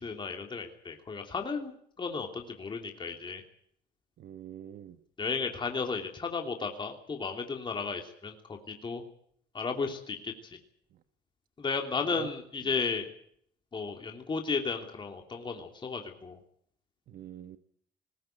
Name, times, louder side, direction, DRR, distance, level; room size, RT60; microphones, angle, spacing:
voice 1, 0.0-3.4 5.2-9.0 9.5-10.6 11.6-13.1 13.7-16.4, left 5 dB, 30° left, 3 dB, 3.1 m, -34 dB
voice 2, 4.2-5.0 10.9-11.0 12.0-12.3 12.6-12.7 17.1-17.6, right 10 dB, 60° right, 9 dB, 1.3 m, -45 dB
20.5 x 16.0 x 9.2 m, 0.65 s
cardioid pair, 110°, 17 cm